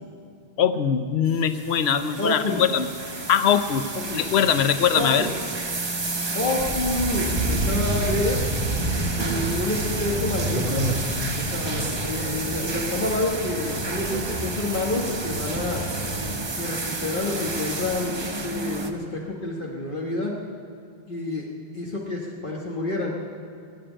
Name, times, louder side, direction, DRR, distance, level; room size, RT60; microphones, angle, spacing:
voice 1, 0.6-2.9 3.3-3.9 4.1-5.3, left 8 dB, 75° left, 11 dB, 1.0 m, -21 dB
sound 1, 1.3-18.9, right 3 dB, 25° right, 0.8 m, -31 dB
voice 2, 2.2-2.6 4.1-4.2 4.9-5.1 6.3-8.4 9.1-10.9 11.3-15.9 16.5-20.3 21.1-21.5 21.7-23.1, left 2 dB, 50° left, -3 dB, 1.6 m, -28 dB
sound 2, 6.6-16.3, right 1 dB, 45° right, 2.6 m, -30 dB
18.5 x 7.7 x 10.0 m, 2.3 s
omnidirectional pair, 1.1 m